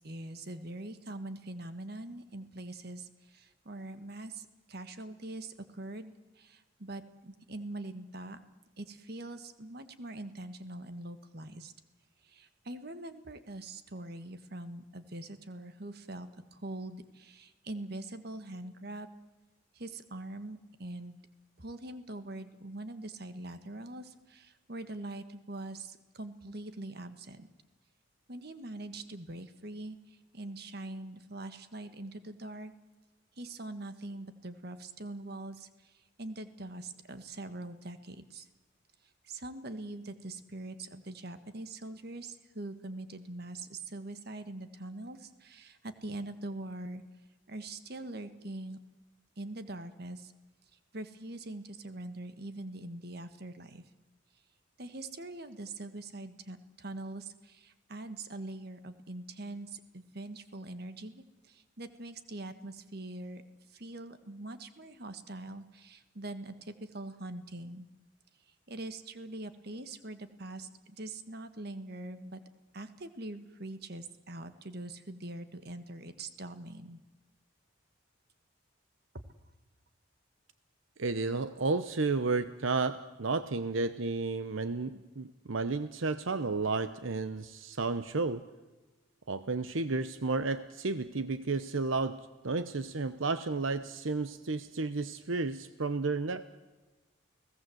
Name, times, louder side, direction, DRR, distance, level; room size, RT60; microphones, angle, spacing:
voice 1, 0.0-8.4 8.8-11.7 12.2-19.1 19.7-21.2 21.6-27.5 28.3-32.7 33.4-38.5 39.2-47.0 47.5-48.8 49.4-50.3 50.9-53.8 54.8-63.4 63.7-67.9 68.7-72.4 72.7-77.0, right 2 dB, 50° right, 10 dB, 1.5 m, -43 dB
voice 2, 81.0-88.4 89.3-96.4, right 3 dB, 75° right, 12 dB, 0.9 m, -32 dB
29.5 x 18.0 x 7.8 m, 1.2 s
head